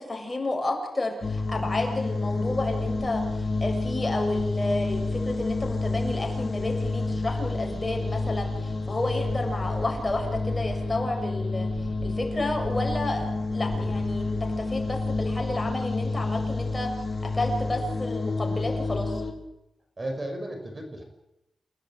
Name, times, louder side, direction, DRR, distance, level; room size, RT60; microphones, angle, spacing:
voice 1, 0.0-11.7 12.0-13.3 13.5-16.9 17.3-19.2, left 2 dB, 20° left, 2 dB, 7.1 m, -31 dB
sound 1, 1.2-19.3, left 3 dB, 35° left, 4.2 m, -29 dB
sound 2, 2.8-16.3, right 3 dB, 60° right, 7.8 m, -45 dB
voice 2, 13.6-14.0 20.0-21.0, right 1 dB, 30° right, 4 dB, 6.1 m, -35 dB
29.5 x 18.0 x 9.0 m, 0.87 s
cardioid pair, 95°, 0 cm